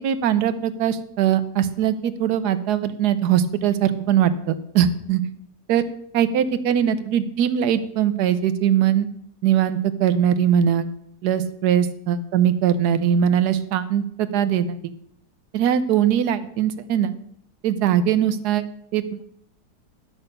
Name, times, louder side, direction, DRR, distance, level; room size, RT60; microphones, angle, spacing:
voice 1, 0.0-5.2 5.7-5.9 6.1-9.1 9.4-10.9 11.2-14.9 15.5-17.1 17.6-18.7 18.9-19.2, right 9 dB, 75° right, 12 dB, 1.3 m, -21 dB
11.0 x 6.3 x 6.5 m, 0.70 s
omnidirectional pair, 1.8 m